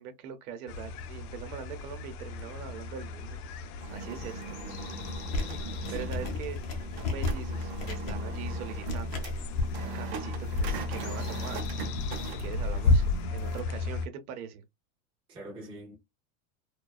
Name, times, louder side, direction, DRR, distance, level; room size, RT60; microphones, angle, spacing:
voice 1, 0.0-3.4 3.9-4.9 5.4-9.3 9.9-11.8 12.2-14.6, right 8 dB, 85° right, 0.8 m, -42 dB
sound 1, 0.7-14.1, left 3 dB, 90° left, 0.6 m, -33 dB
sound 2, 3.8-13.6, right 6 dB, 50° right, 0.7 m, -41 dB
voice 2, 4.6-5.2 5.9-6.2 12.7-13.0 15.3-16.0, right 1 dB, 10° right, 0.5 m, -46 dB
sound 3, 5.1-9.8, left 2 dB, 40° left, 0.7 m, -35 dB
2.4 x 2.3 x 2.2 m
supercardioid pair, 170°, 43 cm